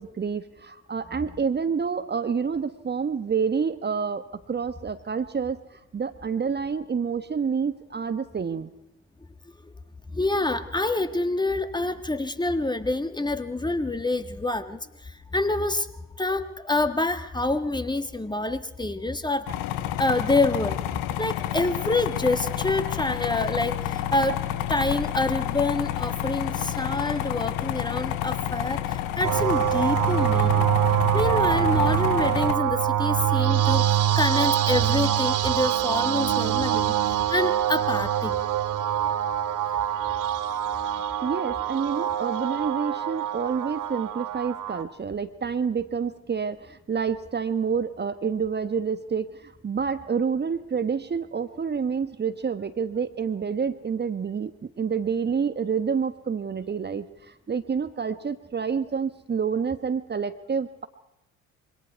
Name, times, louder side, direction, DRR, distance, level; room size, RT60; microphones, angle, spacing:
voice 1, 0.0-8.7 41.2-60.9, right 6 dB, 25° right, 9 dB, 1.2 m, -28 dB
voice 2, 10.1-15.9 16.2-19.5 20.0-20.8 21.2-24.4 24.7-30.7 31.1-38.4, left 2 dB, 10° left, 9 dB, 1.7 m, -27 dB
sound 1, 19.5-32.6, left 12 dB, 65° left, 1.2 m, -29 dB
sound 2, 29.2-44.8, right 10 dB, 50° right, 1.5 m, -24 dB
26.5 x 24.0 x 4.7 m, 0.88 s
figure-of-eight pair, 50°, 39 cm